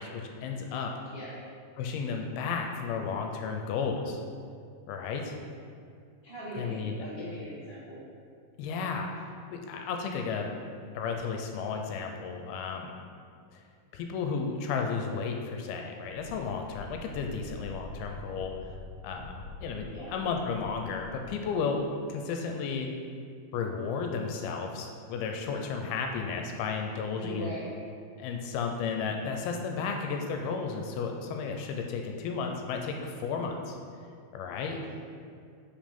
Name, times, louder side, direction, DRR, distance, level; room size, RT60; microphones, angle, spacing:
voice 1, 0.0-0.9 1.8-4.2 4.9-5.4 6.5-7.0 8.6-10.5 10.9-12.9 13.5-13.6 13.9-18.5 19.0-21.8 22.1-22.9 23.5-27.5 28.2-33.8 34.3-34.8, left 5 dB, 80° left, 3 dB, 2.4 m, -33 dB
voice 2, 6.2-8.0 19.9-20.1 27.2-27.7, equal, 90° right, -12 dB, 0.5 m, -40 dB
Wind, 16.1-21.4, left 2 dB, 55° left, 2.4 m, -45 dB
5.6 x 5.2 x 5.2 m, 2.3 s
omnidirectional pair, 4.6 m